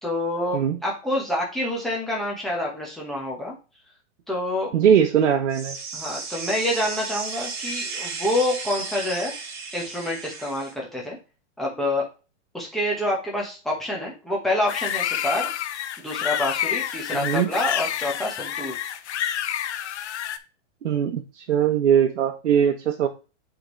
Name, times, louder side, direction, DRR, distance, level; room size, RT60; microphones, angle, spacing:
voice 1, 0.0-3.5 4.3-4.7 5.9-9.3 9.7-11.2 11.6-12.1 12.5-15.5 16.0-18.8, left 1 dB, ahead, -4 dB, 1.2 m, -27 dB
voice 2, 4.7-5.8 17.1-17.5 20.8-23.1, right 8 dB, 75° right, 3 dB, 1.0 m, -20 dB
sound 1, 5.5-10.7, right 4 dB, 40° right, 1.4 m, -34 dB
sound 2, 14.7-20.4, left 10 dB, 65° left, 0.7 m, -28 dB
7.8 x 3.8 x 3.1 m, 0.31 s
hypercardioid pair, 165°, 36 cm